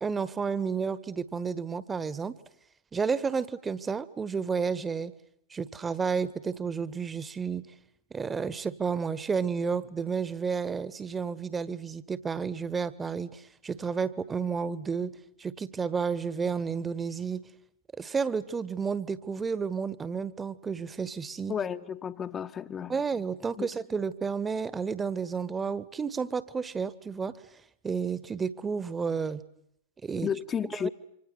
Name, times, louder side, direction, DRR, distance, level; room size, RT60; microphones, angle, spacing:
voice 1, 0.0-2.3 2.9-5.1 5.5-7.7 8.1-17.4 18.0-21.5 22.9-27.4 27.8-29.4 30.0-30.3 30.8-30.9, right 5 dB, 15° right, 1.5 m, -31 dB
voice 2, 21.5-22.9 23.6-23.7 30.2-30.9, left 7 dB, 25° left, 1.2 m, -32 dB
27.0 x 25.5 x 8.0 m
figure-of-eight pair, 90°, 0 cm